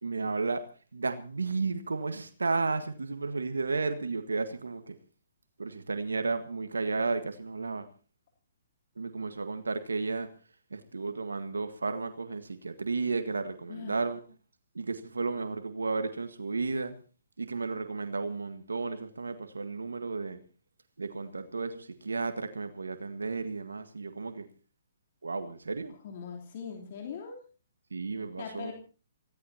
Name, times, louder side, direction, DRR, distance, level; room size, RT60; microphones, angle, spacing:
voice 1, 0.0-0.7 0.9-4.9 5.6-7.9 9.0-10.3 10.7-14.2 14.7-16.9 17.4-20.4 21.0-24.5 25.2-25.9 27.9-28.7, right 4 dB, 90° right, 1.6 m, -33 dB
voice 2, 13.7-14.0 26.0-27.4 28.4-28.7, left 6 dB, 50° left, 3.3 m, -40 dB
26.0 x 17.0 x 2.9 m
hypercardioid pair, 135°, 0 cm